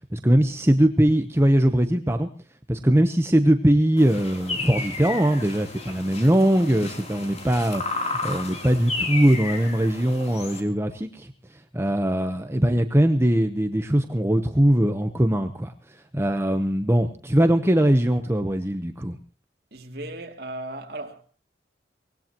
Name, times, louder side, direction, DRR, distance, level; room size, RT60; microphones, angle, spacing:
voice 1, 0.1-2.3 2.7-19.2, right 1 dB, 15° right, 0.9 m, -21 dB
sound 1, 4.0-10.6, left 3 dB, 35° left, 3.3 m, -33 dB
voice 2, 19.7-21.2, right 2 dB, 60° right, 2.7 m, -36 dB
24.0 x 19.5 x 3.0 m
head